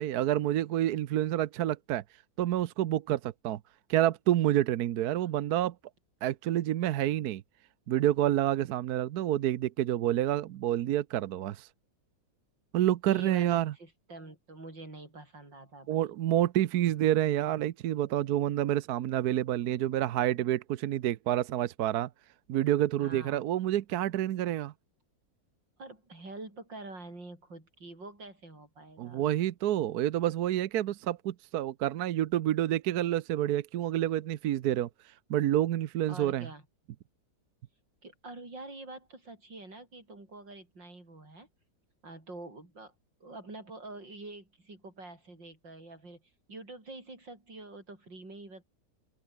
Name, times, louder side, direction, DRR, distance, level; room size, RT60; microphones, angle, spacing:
voice 1, 0.0-2.0 2.4-3.6 3.9-5.7 6.2-7.4 7.9-11.7 12.7-13.7 15.9-22.1 22.5-24.7 29.0-34.9 35.3-36.5, right 12 dB, 65° right, 1.1 m, -28 dB
voice 2, 13.1-16.1 23.0-23.5 25.8-29.3 36.1-36.6 38.0-41.5 42.0-42.9 43.2-48.6, right 2 dB, 85° right, 7.8 m, -46 dB
open air
omnidirectional pair, 1.9 m